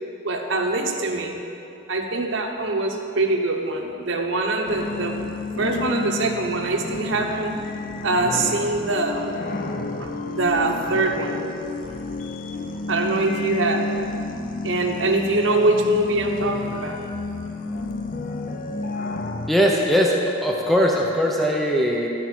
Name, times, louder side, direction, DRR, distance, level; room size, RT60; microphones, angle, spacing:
voice 1, 0.2-1.4 1.9-5.2 5.6-7.6 8.0-9.4 10.0-11.4 12.9-13.9 14.6-17.0, right 2 dB, 75° right, 2 dB, 1.0 m, -23 dB
sound 1, 4.7-19.5, left 3 dB, 45° left, 0.5 m, -31 dB
voice 2, 19.5-22.1, equal, ahead, -2 dB, 0.6 m, -20 dB
12.5 x 4.7 x 6.0 m, 2.7 s
head